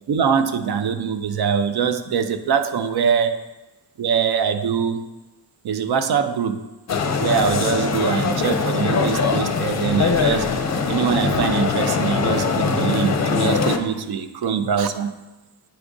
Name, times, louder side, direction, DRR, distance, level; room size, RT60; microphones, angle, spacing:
voice 1, 0.1-3.4 4.0-5.0 5.6-6.6 7.2-10.5 10.9-15.1, right 7 dB, 70° right, 10 dB, 0.5 m, -23 dB
sound 1, 6.9-13.8, left 5 dB, 40° left, 0.5 m, -21 dB
9.0 x 4.7 x 2.6 m, 1.1 s
wide cardioid pair, 125°, 41 cm